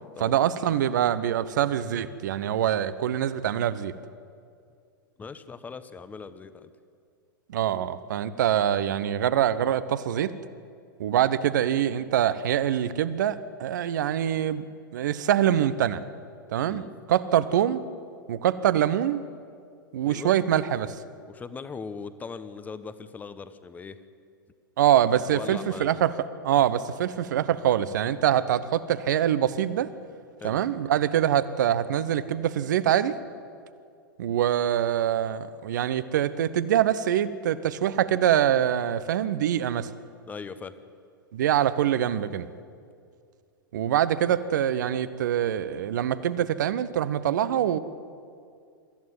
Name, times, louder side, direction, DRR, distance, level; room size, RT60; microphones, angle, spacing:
voice 1, 0.2-3.9 7.5-10.3 11.0-14.6 14.9-16.0 16.5-16.8 17.1-17.8 18.3-19.2 19.9-21.0 24.8-26.1 26.4-29.9 30.4-33.2 34.2-39.9 41.3-42.5 43.7-47.8, right 10 dB, 55° right, 15 dB, 1.0 m, -24 dB
voice 2, 5.2-6.7 16.7-16.9 20.0-20.3 21.2-24.0 25.2-26.0 30.4-30.6 40.3-40.7, left 5 dB, 15° left, 13 dB, 1.0 m, -39 dB
23.5 x 14.0 x 9.5 m, 2.3 s
figure-of-eight pair, 100°, 12 cm